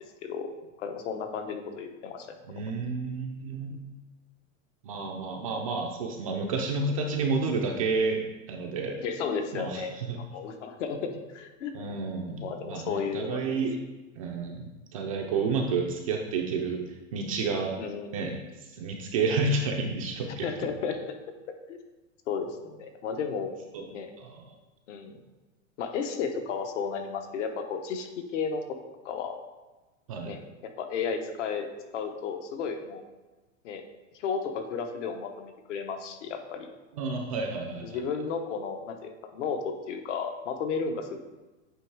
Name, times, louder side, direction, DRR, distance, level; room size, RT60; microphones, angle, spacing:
voice 1, 0.8-2.7 9.0-11.7 12.4-13.6 17.8-18.4 20.3-21.1 21.7-21.8 22.3-23.5 23.9-24.1 24.9-25.1 25.8-28.6 29.0-29.4 30.2-31.7 31.9-33.0 33.6-33.8 34.1-36.7 37.8-41.3, left 6 dB, 65° left, 5 dB, 1.0 m, -33 dB
voice 2, 2.5-3.8 4.8-8.2 8.5-9.0 9.5-10.2 11.7-13.8 14.2-16.8 17.1-17.8 18.1-18.3 18.8-20.5 23.7-23.8 24.2-24.4 30.1-30.4 37.0-38.0, right 4 dB, 30° right, 1 dB, 0.3 m, -30 dB
8.5 x 3.1 x 4.6 m, 1.2 s
supercardioid pair, 160°, 40 cm